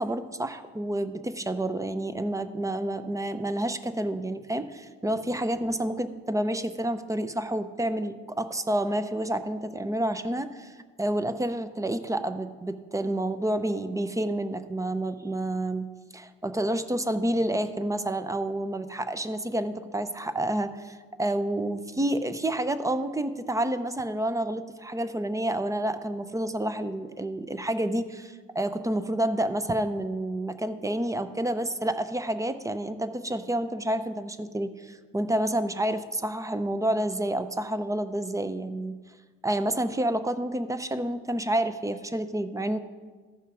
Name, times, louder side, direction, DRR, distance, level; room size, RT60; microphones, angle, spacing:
voice 1, 0.0-15.9 16.1-38.9 39.4-42.8, right 1 dB, 10° right, 11 dB, 0.6 m, -29 dB
14.0 x 5.6 x 4.9 m, 1.4 s
cardioid pair, 90°, 30 cm